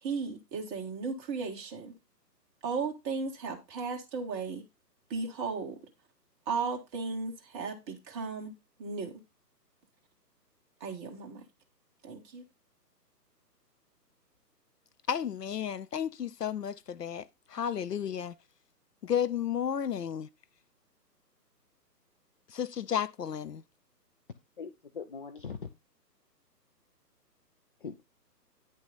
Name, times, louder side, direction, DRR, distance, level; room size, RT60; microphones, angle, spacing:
voice 1, 0.0-1.9 2.6-4.6 5.1-5.7 6.5-8.5 8.8-9.1 10.8-11.4 12.0-12.4, right 4 dB, 15° right, 1.6 m, -35 dB
voice 2, 15.1-17.2 17.5-18.3 19.0-20.3 22.5-23.6, left 8 dB, 70° left, 0.8 m, -32 dB
voice 3, 24.6-25.7 27.8-28.0, left 5 dB, 35° left, 0.6 m, -41 dB
10.0 x 6.4 x 4.0 m
figure-of-eight pair, 135°, 49 cm